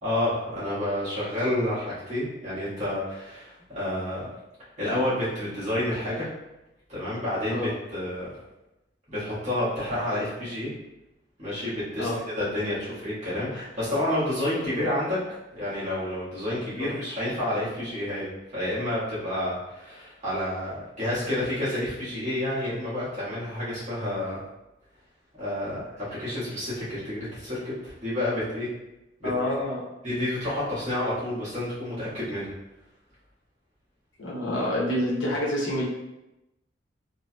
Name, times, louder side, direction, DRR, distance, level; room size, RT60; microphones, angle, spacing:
voice 1, 0.0-4.3 4.8-6.3 6.9-8.3 9.1-10.7 11.4-12.1 12.4-15.2 15.5-18.3 18.5-24.4 25.3-28.7 29.2-29.5 30.0-32.5, left 1 dB, 40° right, -10 dB, 1.4 m, -29 dB
voice 2, 29.2-29.8 34.2-35.8, left 1 dB, 90° left, -4 dB, 0.9 m, -27 dB
3.4 x 2.8 x 2.2 m, 0.96 s
head